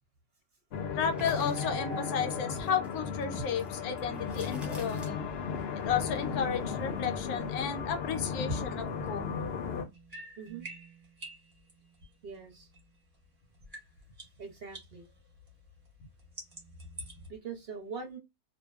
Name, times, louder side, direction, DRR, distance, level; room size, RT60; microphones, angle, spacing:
sound 1, 0.7-9.8, left 5 dB, 65° left, 0.6 m, -35 dB
voice 1, 0.9-5.3 5.9-9.5, left 7 dB, 90° left, 1.1 m, -33 dB
sound 2, 1.1-5.6 5.9-7.5 7.9-8.9, left 1 dB, ahead, 0.7 m, -44 dB
sound 3, 8.8-13.3 13.5-17.3, right 1 dB, 30° right, 1.0 m, -50 dB
voice 2, 10.4-10.7 12.2-12.7 14.4-15.0 17.3-18.2, right 5 dB, 55° right, 0.8 m, -42 dB
2.6 x 2.1 x 2.3 m
omnidirectional pair, 1.5 m